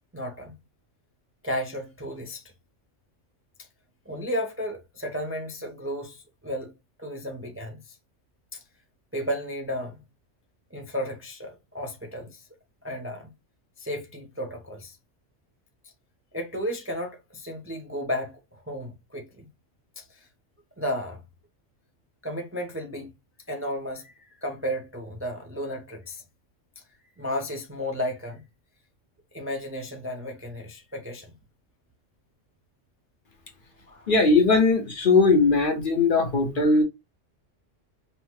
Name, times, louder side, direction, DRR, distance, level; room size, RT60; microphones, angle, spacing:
voice 1, 0.1-0.6 1.4-2.4 4.1-6.7 7.0-8.0 8.5-8.6 9.1-10.0 10.7-12.4 12.8-13.3 13.8-15.0 16.3-19.5 20.0-20.3 20.8-21.2 22.2-23.1 23.5-26.2 27.2-28.5 29.3-31.4 33.9-34.1, equal, 15° right, 0.5 m, -33 dB
voice 2, 34.1-36.8, left 3 dB, 45° left, 1.0 m, -19 dB
5.6 x 2.1 x 3.1 m
omnidirectional pair, 1.2 m